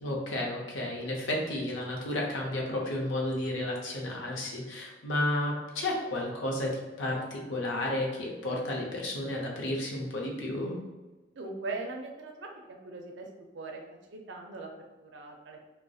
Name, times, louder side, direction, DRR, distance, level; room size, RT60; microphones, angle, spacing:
voice 1, 0.0-10.7, left 1 dB, 90° left, -1 dB, 0.6 m, -32 dB
voice 2, 11.3-13.3 13.5-13.8 14.1-15.6, right 3 dB, 70° right, 2 dB, 0.4 m, -40 dB
2.6 x 2.0 x 2.3 m, 1.2 s
head